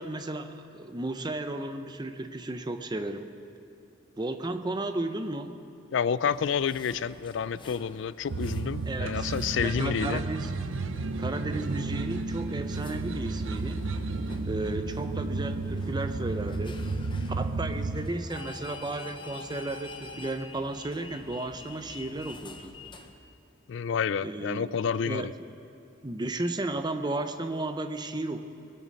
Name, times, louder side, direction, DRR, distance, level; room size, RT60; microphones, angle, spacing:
voice 1, 0.0-3.3 4.2-5.6 8.9-9.3 9.6-10.5 11.2-13.8 14.5-16.8 17.4-22.7 24.2-24.8 25.0-25.5 26.0-28.4, right 2 dB, 20° right, 8 dB, 0.6 m, -34 dB
voice 2, 5.9-10.2 23.7-25.3, left 7 dB, 65° left, 17 dB, 0.4 m, -29 dB
sound 1, 6.3-23.1, left 3 dB, 25° left, 0.8 m, -48 dB
sound 2, 8.3-18.1, right 3 dB, 70° right, 0.6 m, -32 dB
22.5 x 8.3 x 6.4 m, 2.7 s
head